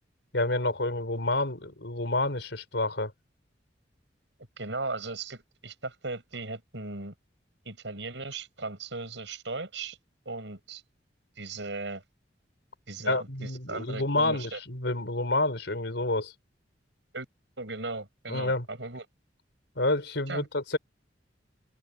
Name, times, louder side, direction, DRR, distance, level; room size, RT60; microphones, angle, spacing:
voice 1, 0.3-3.1 13.0-16.3 18.3-18.6 19.8-20.8, left 2 dB, 70° left, 4.8 m, -28 dB
voice 2, 4.6-7.1 7.6-10.0 10.2-10.8 11.4-12.0 12.9-14.6 17.1-17.3 17.6-19.0 20.3-20.5, right 3 dB, 75° right, 6.3 m, -37 dB
open air
head